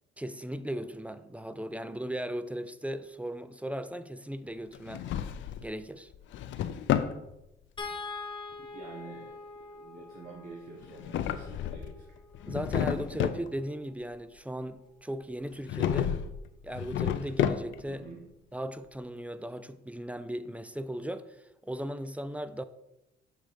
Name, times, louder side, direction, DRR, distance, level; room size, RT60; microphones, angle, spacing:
voice 1, 0.2-5.1 5.6-6.1 12.5-16.2 16.6-18.1 18.5-22.6, right 1 dB, 5° right, 0.3 m, -37 dB
Drawer open or close, 4.7-5.7 6.1-7.2 10.8-12.0 12.3-13.5 15.6-16.3 16.7-17.9, left 10 dB, 70° left, 0.4 m, -31 dB
sound 1, 7.8-14.1 15.6-15.8 16.2-16.3, left 4 dB, 25° left, 1.1 m, -45 dB
voice 2, 8.6-12.2 17.9-18.2, right 3 dB, 45° right, 1.3 m, -47 dB
6.6 x 3.6 x 5.1 m
cardioid pair, 90°, 20 cm